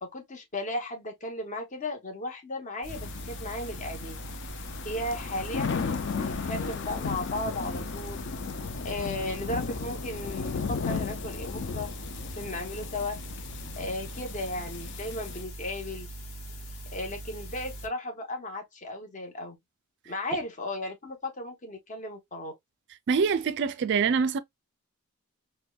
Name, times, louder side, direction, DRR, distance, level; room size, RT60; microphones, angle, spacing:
voice 1, 0.0-4.2 4.8-8.2 8.8-11.9 12.3-13.2 13.8-16.1 16.9-19.6 20.0-22.5, left 1 dB, 35° left, 0.9 m, -35 dB
sound 1, 2.8-17.9, right 1 dB, 85° left, 1.0 m, -41 dB
sound 2, 2.9-15.4, left 5 dB, 55° left, 0.4 m, -35 dB
voice 2, 23.1-24.4, right 5 dB, 55° right, 0.4 m, -25 dB
4.3 x 2.2 x 2.3 m
head